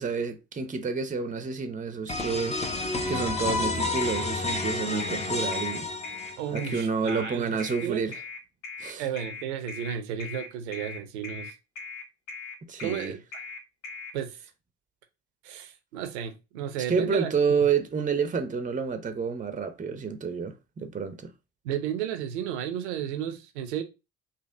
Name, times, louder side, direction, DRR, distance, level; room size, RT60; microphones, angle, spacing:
voice 1, 0.0-2.6 3.1-5.9 6.5-8.2 8.8-9.0 12.7-13.1 16.9-21.3, right 5 dB, 25° right, 0.7 m, -29 dB
sound 1, 2.1-6.7, left 3 dB, 20° left, 0.9 m, -30 dB
sound 2, 4.0-14.1, left 4 dB, 85° left, 0.7 m, -40 dB
voice 2, 6.4-8.0 9.0-11.5 12.8-13.2 14.1-14.4 15.4-17.3 21.6-23.8, right 9 dB, 75° right, 0.8 m, -33 dB
4.2 x 2.8 x 3.7 m
figure-of-eight pair, 50°, 34 cm